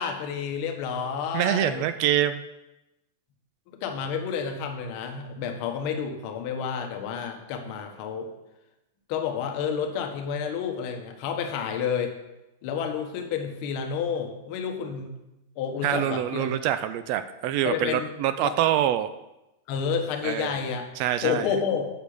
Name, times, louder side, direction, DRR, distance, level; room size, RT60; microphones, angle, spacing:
voice 1, 0.0-1.8 3.8-8.3 9.1-12.1 12.6-15.1 15.6-16.5 17.6-18.1 18.4-18.6 19.7-20.9 21.2-21.9, left 7 dB, 45° left, 4 dB, 1.2 m, -30 dB
voice 2, 1.3-2.4 15.8-19.1 20.2-20.6 21.0-21.5, right 11 dB, 45° right, 12 dB, 0.4 m, -25 dB
8.4 x 6.7 x 5.0 m, 0.96 s
supercardioid pair, 155°, 0 cm